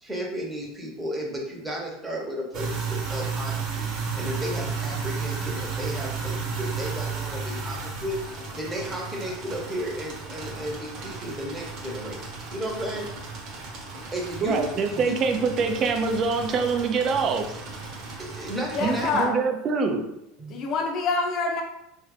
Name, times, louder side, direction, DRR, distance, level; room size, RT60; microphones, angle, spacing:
voice 1, 0.0-13.1 14.1-14.6 14.9-15.1 18.2-19.1 20.4-20.5, equal, 10° right, -2 dB, 1.0 m, -34 dB
sound 1, 2.5-19.2, right 4 dB, 55° right, 1.0 m, -34 dB
voice 2, 14.4-17.7 18.8-20.0, right 4 dB, 40° right, 5 dB, 0.5 m, -25 dB
voice 3, 18.7-19.3 20.5-21.6, left 4 dB, 45° left, 3 dB, 0.7 m, -26 dB
3.1 x 2.4 x 3.3 m, 0.84 s
supercardioid pair, 105°, 0 cm